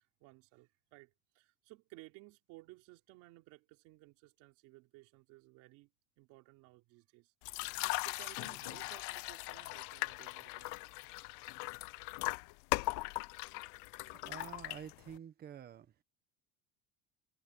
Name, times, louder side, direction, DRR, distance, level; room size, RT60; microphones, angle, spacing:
voice 1, 0.0-5.9 6.2-7.3 7.6-10.8, right 20 dB, 80° right, 3.6 m, -58 dB
sound 1, 7.4-15.2, left 24 dB, 80° left, 0.7 m, -39 dB
voice 2, 14.2-15.9, right 9 dB, 30° right, 1.2 m, -49 dB
cardioid pair, 160°, 30 cm